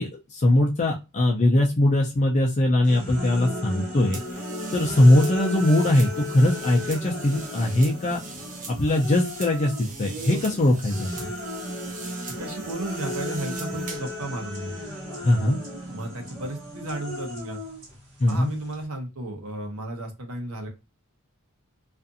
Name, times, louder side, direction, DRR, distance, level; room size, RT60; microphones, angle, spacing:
voice 1, 0.0-4.2 4.7-8.2 8.7-11.1 15.2-15.6 18.2-18.5, left 1 dB, 35° left, 0 dB, 0.4 m, -21 dB
sound 1, 2.8-9.9 10.3-18.8, left 1 dB, 55° right, 1.1 m, -35 dB
sound 2, 4.1-14.2, right 4 dB, 35° right, 0.6 m, -41 dB
voice 2, 12.3-14.8 15.9-17.6 18.3-20.7, right 1 dB, 85° right, 3 dB, 0.9 m, -34 dB
2.5 x 2.4 x 2.5 m, 0.26 s
head